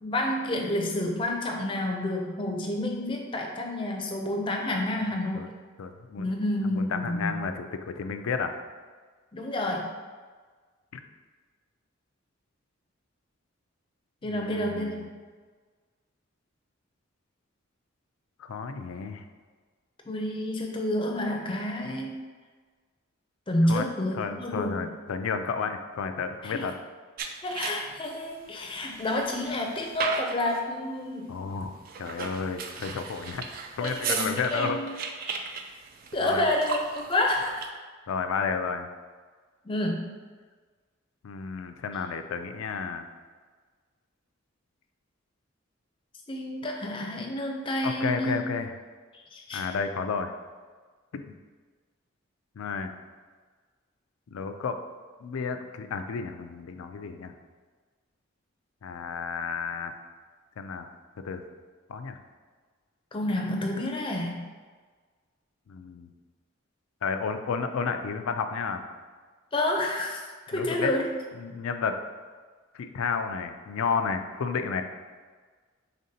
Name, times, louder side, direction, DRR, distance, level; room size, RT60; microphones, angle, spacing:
voice 1, 0.0-5.5 6.2-7.4 9.3-9.9 14.2-15.0 20.1-22.1 23.5-24.9 26.4-26.7 27.4-31.3 33.8-34.9 35.2-35.5 36.1-37.8 39.6-40.1 46.3-48.4 49.1-49.8 63.1-64.4 69.5-71.1, left 1 dB, 25° left, 2 dB, 0.5 m, -29 dB
voice 2, 5.8-6.3 6.7-8.5 14.3-15.1 18.4-19.2 23.7-23.9 24.2-26.7 31.3-33.4 33.8-34.8 36.2-36.4 38.1-38.9 41.2-43.0 47.8-48.7 49.5-50.3 52.6-52.9 54.3-54.8 55.2-57.3 58.8-59.9 60.6-60.9 61.2-61.4 61.9-62.2 65.7-66.1 67.0-68.8 70.5-70.9 71.4-72.0 72.7-74.8, left 5 dB, 85° left, 8 dB, 0.4 m, -31 dB
sound 1, 27.2-28.1 28.6-30.7 31.8-37.7, right 5 dB, 45° right, 0.3 m, -36 dB
5.2 x 3.6 x 2.8 m, 1.5 s
head